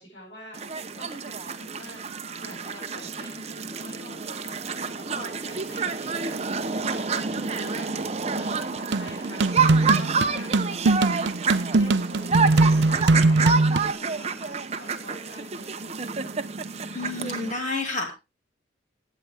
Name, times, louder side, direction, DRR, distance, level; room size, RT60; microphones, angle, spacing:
voice 1, 0.0-7.2 7.5-8.1 8.3-16.0, equal, 60° left, -7 dB, 7.5 m, -45 dB
sound 1, 0.5-17.5, right 5 dB, 35° right, 0.8 m, -29 dB
sound 2, 8.9-13.9, right 2 dB, 60° right, 0.5 m, -21 dB
voice 2, 16.9-18.1, left 3 dB, 40° left, 3 dB, 2.6 m, -30 dB
16.5 x 9.3 x 3.5 m, 0.28 s
head